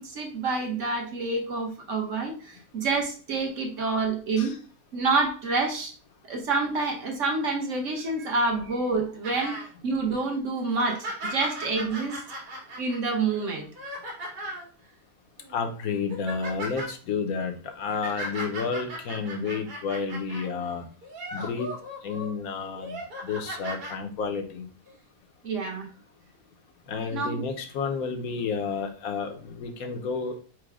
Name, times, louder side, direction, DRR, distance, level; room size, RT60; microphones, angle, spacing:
voice 1, 0.0-4.5 4.9-5.9 6.2-9.6 9.8-12.4 12.8-13.7 25.4-25.9 27.1-27.5, right 3 dB, 50° right, 2 dB, 1.2 m, -28 dB
sound 1, 9.2-9.7 10.1-10.2 10.7-14.7 15.4-15.6 15.9-16.9 17.7-20.5 21.0-22.3 22.7-23.9 24.9-25.0, equal, 80° right, 2.2 m, -37 dB
voice 2, 15.5-20.8 21.3-21.7 22.0-24.7 26.9-30.4, left 5 dB, 65° left, 5 dB, 1.1 m, -31 dB
4.8 x 2.2 x 4.7 m, 0.38 s
omnidirectional pair, 1.8 m